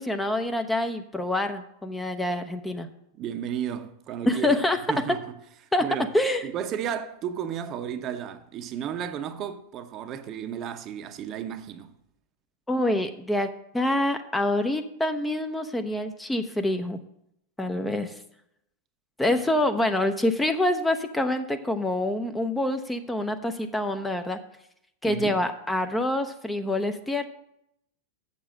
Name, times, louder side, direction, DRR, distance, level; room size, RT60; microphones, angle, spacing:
voice 1, 0.0-2.9 4.3-4.8 5.7-5.8 6.1-6.5 12.7-13.5 13.7-17.0 17.6-18.1 19.2-24.4 25.0-27.2, left 1 dB, 5° left, 0.7 m, -26 dB
voice 2, 3.1-5.2 5.8-6.1 6.4-11.9 19.3-19.4 25.0-25.4, right 9 dB, 35° right, 0.8 m, -33 dB
7.2 x 6.9 x 6.3 m
figure-of-eight pair, 90°, 0 cm